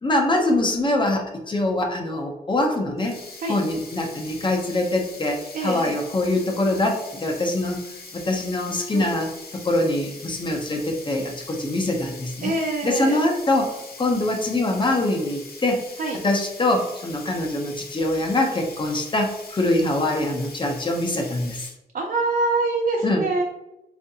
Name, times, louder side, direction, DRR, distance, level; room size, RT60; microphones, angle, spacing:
voice 1, 0.0-3.2 3.5-7.8 8.1-12.6 12.8-15.8 16.2-21.7 23.0-23.3, left 2 dB, 30° left, 2 dB, 0.5 m, -24 dB
Sink (filling or washing), 3.0-21.7, left 3 dB, 65° left, 0.7 m, -42 dB
voice 2, 5.5-6.0 8.9-9.1 12.4-13.2 16.0-16.2 21.9-23.4, right 3 dB, 55° right, 0 dB, 0.4 m, -25 dB
4.4 x 2.4 x 2.7 m, 0.91 s
wide cardioid pair, 165°, 17 cm